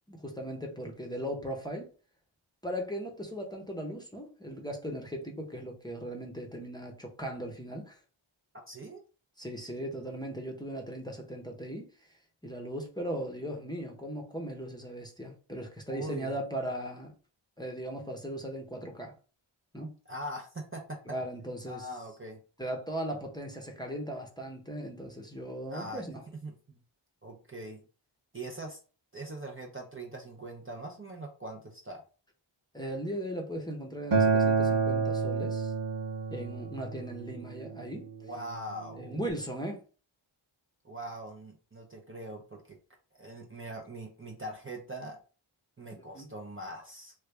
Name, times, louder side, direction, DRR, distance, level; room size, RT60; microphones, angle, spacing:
voice 1, 0.1-1.9 2.6-8.0 9.4-11.9 12.4-17.1 17.6-19.2 19.7-19.9 21.1-21.9 22.6-26.2 32.7-35.7 36.3-38.1 39.0-39.8 46.1-46.3, right 1 dB, 10° left, 0.8 m, -38 dB
voice 2, 8.7-9.0 15.9-16.4 20.1-21.0 21.7-22.4 25.7-26.0 26.4-26.8 27.2-27.8 28.3-28.8 29.1-32.0 38.2-39.2 40.8-42.8 43.1-45.2 45.8-47.1, right 1 dB, 25° right, 0.6 m, -42 dB
Acoustic guitar, 34.1-39.3, right 4 dB, 75° right, 0.9 m, -30 dB
3.2 x 2.3 x 3.3 m
wide cardioid pair, 60°, 49 cm